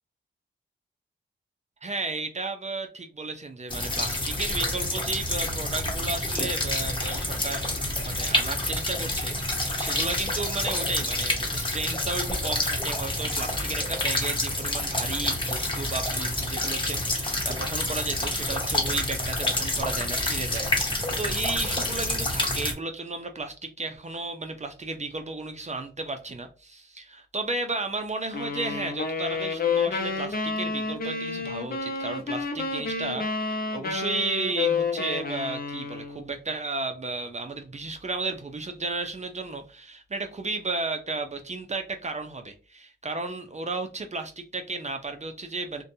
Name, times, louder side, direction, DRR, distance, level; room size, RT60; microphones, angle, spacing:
voice 1, 1.8-45.8, right 3 dB, 35° right, 6 dB, 0.5 m, -34 dB
sound 1, 3.7-22.7, left 1 dB, 25° left, 1.0 m, -28 dB
sound 2, 28.3-36.3, left 4 dB, 45° left, 0.7 m, -29 dB
2.5 x 2.2 x 2.6 m, 0.34 s
cardioid pair, 55°, 21 cm